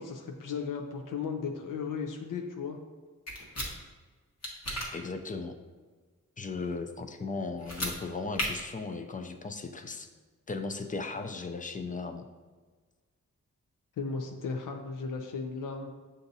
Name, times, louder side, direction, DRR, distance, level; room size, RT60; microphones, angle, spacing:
voice 1, 0.0-2.8 3.5-3.6 14.0-15.9, left 5 dB, 80° left, 3 dB, 0.5 m, -36 dB
sound 1, 3.3-3.7 4.4-4.9 7.6-7.9 8.3-8.5, equal, 50° left, 1.1 m, -33 dB
voice 2, 4.9-5.6 6.4-10.1 10.5-12.2, left 3 dB, 25° left, 6 dB, 0.4 m, -37 dB
6.8 x 2.6 x 2.6 m, 1.4 s
cardioid pair, 65°, 32 cm